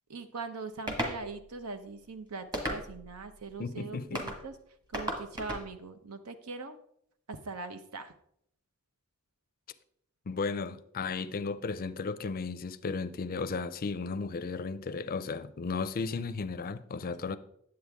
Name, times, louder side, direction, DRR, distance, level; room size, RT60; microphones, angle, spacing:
voice 1, 0.1-4.5 4.9-6.8 7.3-8.1 17.3-17.4, right 4 dB, 80° right, 0.8 m, -41 dB
sound 1, 0.9-1.2 2.5-3.1 4.2-4.4 4.9-5.7, equal, 20° right, 1.4 m, -34 dB
voice 2, 3.6-4.3 10.3-17.4, left 4 dB, 40° left, 0.5 m, -34 dB
9.6 x 7.8 x 3.5 m
head